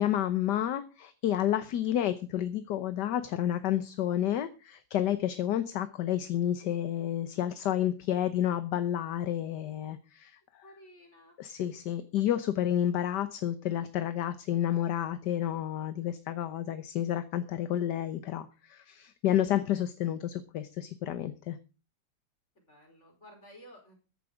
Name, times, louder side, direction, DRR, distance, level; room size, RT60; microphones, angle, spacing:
voice 1, 0.0-10.6 11.4-21.6, left 11 dB, 70° left, 11 dB, 1.5 m, -30 dB
voice 2, 10.6-11.3 22.5-24.0, equal, 40° left, 3 dB, 5.1 m, -54 dB
14.0 x 10.5 x 5.0 m, 0.32 s
omnidirectional pair, 2.0 m